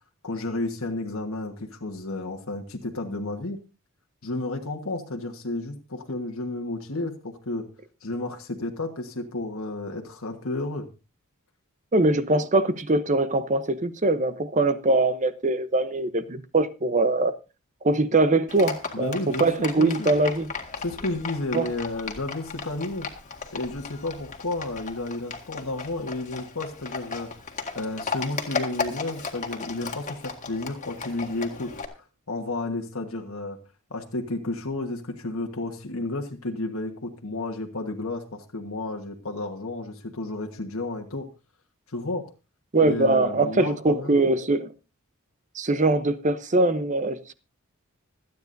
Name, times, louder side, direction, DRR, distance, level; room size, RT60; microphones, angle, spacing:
voice 1, 0.2-3.6 4.2-7.7 8.0-10.9 18.9-20.1 20.8-23.1 23.5-27.3 27.7-33.6 33.9-41.3 41.9-42.3 42.8-44.1, left 2 dB, 65° left, 1.4 m, -32 dB
voice 2, 11.9-17.3 17.8-20.5 21.5-21.7 42.7-44.7 45.5-47.3, right 2 dB, 35° right, 0.8 m, -22 dB
Livestock farm animals working animals, 18.5-31.9, left 5 dB, 35° left, 1.9 m, -35 dB
26.0 x 9.4 x 2.6 m
head